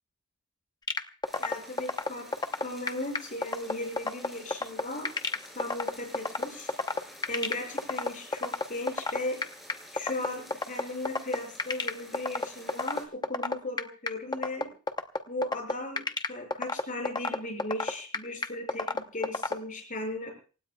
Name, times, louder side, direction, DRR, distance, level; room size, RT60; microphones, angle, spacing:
sound 1, 0.9-19.5, left 3 dB, 20° left, 0.8 m, -29 dB
sound 2, 1.2-13.1, equal, ahead, 5.8 m, -50 dB
voice 1, 1.4-2.3 2.6-5.1 5.5-6.7 7.3-9.4 9.9-14.7 15.3-20.3, left 2 dB, 35° left, 2 dB, 6.0 m, -37 dB
27.5 x 16.0 x 2.3 m, 0.37 s
head